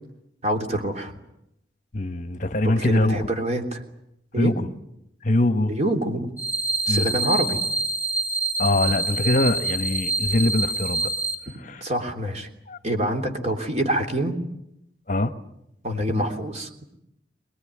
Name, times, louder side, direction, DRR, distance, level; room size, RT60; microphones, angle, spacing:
voice 1, 0.4-1.1 2.6-3.8 4.3-4.6 5.7-6.3 6.9-7.6 11.8-12.5 12.8-14.4 15.8-16.7, right 1 dB, 40° right, 4 dB, 3.4 m, -26 dB
voice 2, 1.9-3.3 4.4-4.7 5.2-5.7 6.9-7.1 8.6-11.1 11.6-11.8 12.7-12.8 15.1-15.3, left 2 dB, 45° left, 10 dB, 1.2 m, -23 dB
sound 1, 6.4-11.3, right 2 dB, 10° right, 4.2 m, -26 dB
24.0 x 21.0 x 9.8 m, 0.81 s
head